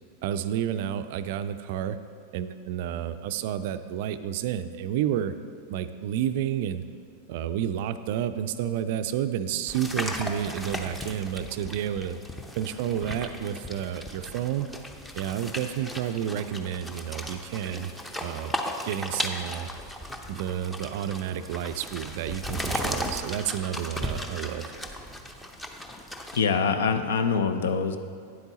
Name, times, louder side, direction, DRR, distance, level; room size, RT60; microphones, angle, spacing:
voice 1, 0.2-2.0 2.3-5.3 5.7-6.8 7.3-12.2 12.6-14.7 15.1-17.9 18.2-18.5 18.8-19.7 20.3-24.6, right 10 dB, 50° right, 11 dB, 0.4 m, -30 dB
sound 1, 9.7-26.4, equal, 5° left, 0.7 m, -36 dB
voice 2, 26.3-28.0, left 5 dB, 60° left, 9 dB, 0.6 m, -24 dB
9.4 x 7.9 x 4.1 m, 2.3 s
figure-of-eight pair, 90°, 0 cm